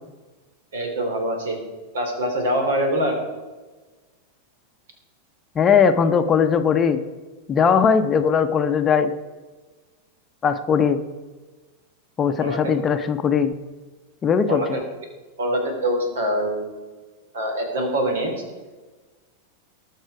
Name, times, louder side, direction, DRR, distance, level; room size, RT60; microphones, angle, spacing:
voice 1, 0.7-1.6 1.9-3.1 12.4-12.7 14.5-14.8 15.4-16.7 17.3-18.3, right 1 dB, 60° right, 4 dB, 3.2 m, -24 dB
voice 2, 5.6-7.0 7.5-9.1 10.4-11.0 12.2-13.5 14.2-14.8, left 6 dB, 25° left, 8 dB, 0.8 m, -19 dB
19.0 x 6.5 x 4.8 m, 1.3 s
figure-of-eight pair, 90°, 0 cm